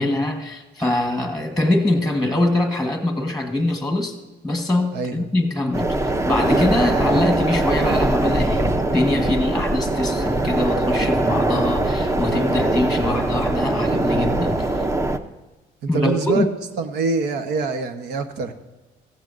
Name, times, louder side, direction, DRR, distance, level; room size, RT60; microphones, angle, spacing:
voice 1, 0.0-4.2 4.4-14.9 15.9-16.5, left 1 dB, ahead, 4 dB, 1.4 m, -23 dB
voice 2, 4.9-5.3 15.8-16.4 16.8-18.5, right 4 dB, 80° right, 7 dB, 1.1 m, -24 dB
sound 1, 5.7-15.2, right 2 dB, 15° right, 0.7 m, -21 dB
16.0 x 15.0 x 2.6 m, 1.2 s
cardioid pair, 110°, 17 cm